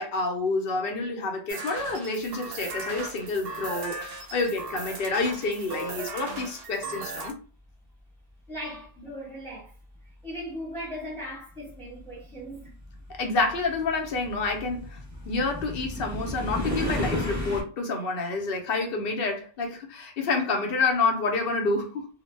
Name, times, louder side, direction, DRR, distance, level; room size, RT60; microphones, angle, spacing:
voice 1, 0.0-4.0 4.3-7.4 13.1-15.0 15.3-22.1, left 3 dB, 60° left, 0.7 m, -28 dB
sound 1, 1.5-7.3, right 3 dB, 65° right, 0.7 m, -37 dB
voice 2, 8.5-9.7 10.2-12.7, equal, ahead, 0.9 m, -38 dB
sound 2, 10.4-10.5 11.5-17.6, left 1 dB, 20° right, 0.5 m, -33 dB
2.1 x 2.0 x 3.1 m
omnidirectional pair, 1.2 m